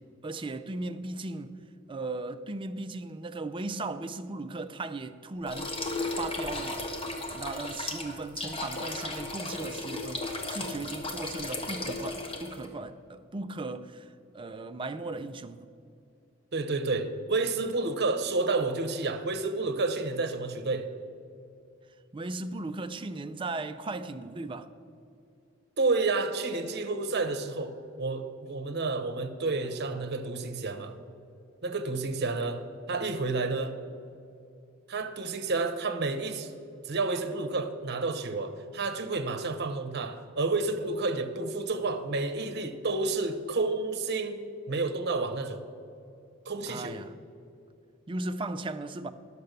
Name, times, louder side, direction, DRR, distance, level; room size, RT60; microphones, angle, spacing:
voice 1, 0.0-1.6 1.9-5.8 6.1-6.9 7.3-15.7 22.1-24.7 29.5-29.6 29.9-30.0 46.7-47.1 48.1-49.1, right 2 dB, 25° right, 0.4 m, -37 dB
sound 1, 5.5-12.7, left 2 dB, 30° left, 1.2 m, -35 dB
voice 2, 16.5-20.9 25.8-31.0 31.6-32.6 32.9-33.7 34.9-36.5 36.8-44.4 44.7-45.6 46.5-47.0, right 3 dB, 55° right, 0.9 m, -30 dB
10.5 x 6.7 x 6.7 m
head